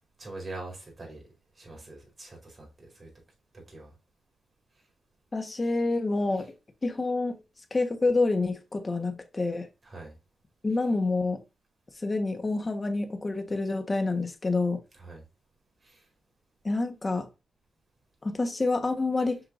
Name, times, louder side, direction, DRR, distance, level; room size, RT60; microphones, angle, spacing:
voice 1, 0.2-1.2 1.6-3.1 3.7-3.9 9.9-10.2 15.0-15.2 15.8-16.0, right 2 dB, 30° right, 4.4 m, -43 dB
voice 2, 5.3-6.5 6.8-7.4 7.7-9.7 10.6-11.4 12.0-14.8 16.6-17.3 18.2-19.4, left 3 dB, 30° left, 1.4 m, -27 dB
8.0 x 5.9 x 2.7 m
wide cardioid pair, 115°, 0 cm